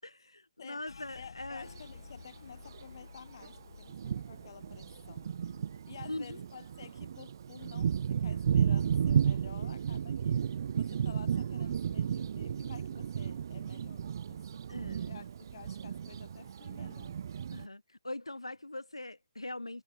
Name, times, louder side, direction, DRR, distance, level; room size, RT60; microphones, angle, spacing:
voice 1, 0.0-1.7 6.1-6.4 14.7-15.1 17.5-19.8, left 2 dB, 85° left, 7.0 m, -42 dB
sound 1, 0.8-10.3 10.5-11.8 12.1-12.6 13.0-13.6, left 4 dB, 65° left, 6.6 m, -55 dB
voice 2, 1.1-5.3 5.9-10.4 10.8-14.7 15.0-17.2, left 7 dB, 50° left, 7.1 m, -52 dB
Thunder, 1.6-1.8 2.7-2.8 3.4-3.5 3.9-17.7, right 8 dB, 45° right, 2.6 m, -33 dB
figure-of-eight pair, 140°, 3 cm